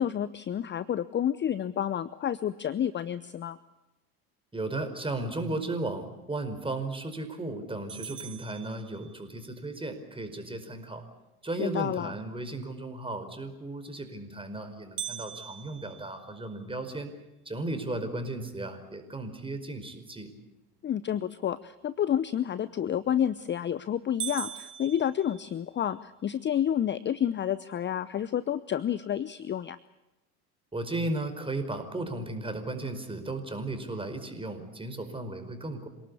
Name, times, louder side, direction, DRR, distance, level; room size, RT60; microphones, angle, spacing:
voice 1, 0.0-3.6 11.6-12.1 20.8-29.8, left 10 dB, 25° left, 17 dB, 0.8 m, -29 dB
voice 2, 4.5-11.0 11.4-17.1 17.4-20.3 30.7-35.9, right 2 dB, 10° right, 7 dB, 5.0 m, -35 dB
sound 1, 7.9-9.5 15.0-17.1 17.6-17.7 18.2-18.3 19.0-19.3 22.9-23.3 23.7-23.8 24.2-25.9, right 11 dB, 80° right, 1.2 m, -41 dB
27.0 x 18.5 x 8.6 m, 0.99 s
figure-of-eight pair, 70°, 45 cm